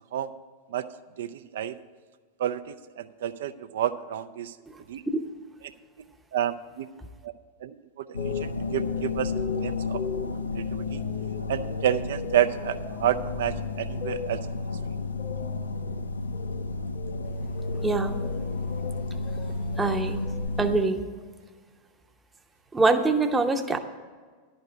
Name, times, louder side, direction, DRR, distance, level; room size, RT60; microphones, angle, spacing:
voice 1, 1.2-1.7 2.4-4.5 4.9-5.0 6.3-6.9 7.2-7.3 7.6-9.3 9.6-11.0 11.5-14.4, right 11 dB, 60° right, 11 dB, 0.5 m, -30 dB
sound 1, 8.1-20.8, left 3 dB, 75° left, 0.5 m, -32 dB
sound 2, 8.2-20.5, left 6 dB, 50° left, 1.0 m, -39 dB
voice 2, 17.8-18.3 19.8-21.0 22.7-23.8, right 3 dB, 10° right, 6 dB, 0.8 m, -25 dB
11.5 x 5.2 x 8.0 m, 1.5 s
figure-of-eight pair, 90°, 0 cm